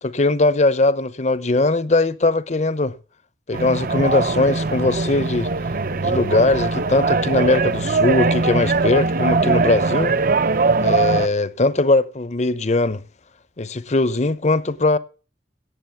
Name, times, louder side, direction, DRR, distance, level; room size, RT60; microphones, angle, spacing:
voice 1, 0.0-2.9 3.5-5.5 6.0-10.1 10.8-13.0 13.6-15.0, left 2 dB, 40° left, 0.7 m, -20 dB
sound 1, 3.5-11.3, right 3 dB, 50° right, 0.7 m, -21 dB
17.0 x 7.6 x 7.1 m
head